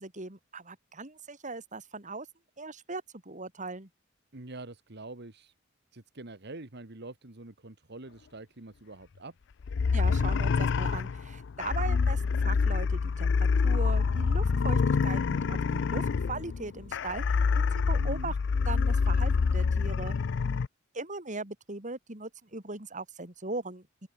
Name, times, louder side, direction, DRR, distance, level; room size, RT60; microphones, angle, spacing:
voice 1, 0.0-2.3 2.6-3.9 9.9-18.3 18.6-20.1 20.9-24.1, right 3 dB, 40° right, 3.8 m, -39 dB
voice 2, 4.3-5.5 5.9-9.3 17.9-18.3, right 2 dB, 55° right, 1.9 m, -45 dB
sound 1, 9.6-20.7, left 5 dB, 65° left, 0.4 m, -27 dB
head